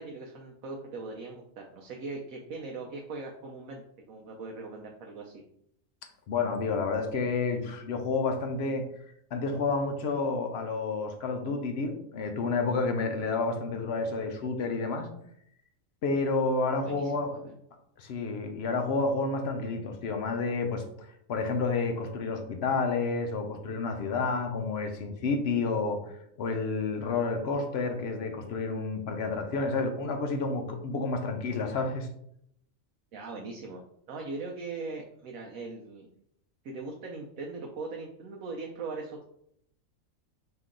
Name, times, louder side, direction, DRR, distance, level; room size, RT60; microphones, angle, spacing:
voice 1, 0.0-3.8 4.1-5.4 16.8-17.5 33.1-33.8 34.1-36.1 36.6-39.2, right 3 dB, 80° right, 0 dB, 1.1 m, -40 dB
voice 2, 6.3-8.8 9.3-15.1 16.0-17.4 18.0-32.1, left 4 dB, 60° left, 5 dB, 0.8 m, -30 dB
4.4 x 2.9 x 3.7 m, 0.73 s
omnidirectional pair, 1.4 m